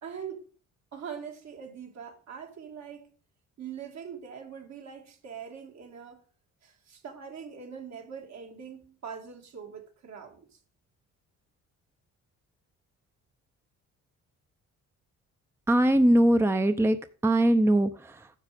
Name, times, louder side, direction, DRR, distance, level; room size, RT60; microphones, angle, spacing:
voice 1, 0.0-0.4 0.9-3.1 3.6-6.2 6.6-10.5, right 7 dB, 65° right, 2.7 m, -42 dB
voice 2, 15.7-17.0 17.2-18.3, right 1 dB, 10° right, 0.7 m, -21 dB
10.0 x 7.3 x 5.3 m
cardioid pair, 90°, 30 cm